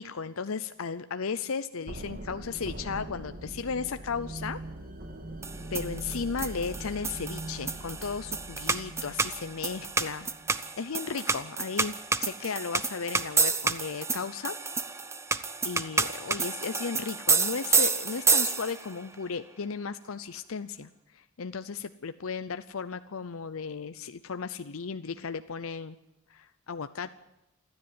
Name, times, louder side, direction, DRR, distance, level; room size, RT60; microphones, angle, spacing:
voice 1, 0.0-4.6 5.7-10.3 10.8-11.9 12.2-14.6 15.6-26.0 26.3-27.1, left 5 dB, 70° left, 11 dB, 0.6 m, -35 dB
sound 1, 1.9-10.7, right 1 dB, 45° right, 2.0 m, -42 dB
sound 2, 5.4-18.9, right 4 dB, 15° right, 0.7 m, -29 dB
28.0 x 10.5 x 9.5 m, 0.90 s
head